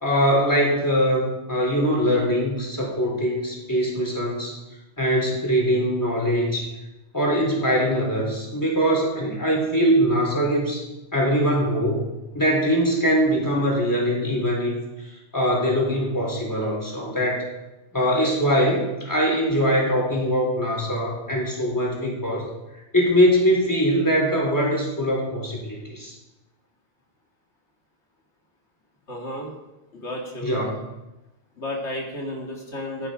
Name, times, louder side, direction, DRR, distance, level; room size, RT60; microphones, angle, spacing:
voice 1, 0.0-4.6 5.0-6.7 7.1-10.8 11.1-12.1 12.3-17.4 17.9-22.5 22.9-26.2 30.4-30.8, equal, 15° left, -2 dB, 3.7 m, -22 dB
voice 2, 29.1-29.5 29.9-30.6 31.6-33.1, left 1 dB, 75° left, -1 dB, 2.5 m, -32 dB
16.0 x 10.0 x 5.0 m, 1.0 s
omnidirectional pair, 1.2 m